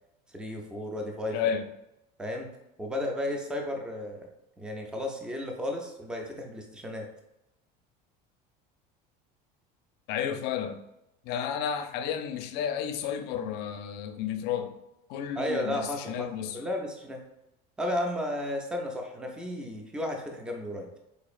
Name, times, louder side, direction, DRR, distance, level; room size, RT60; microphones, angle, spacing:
voice 1, 0.3-1.4 2.2-2.5 2.8-4.3 4.6-7.1 15.4-16.3 16.5-17.2 17.8-20.9, left 1 dB, 5° right, 2 dB, 0.4 m, -33 dB
voice 2, 1.3-1.7 10.1-10.8 11.2-14.8 15.1-16.6, left 8 dB, 55° left, 8 dB, 0.5 m, -32 dB
4.2 x 2.9 x 2.4 m, 0.89 s
cardioid pair, 150°, 20 cm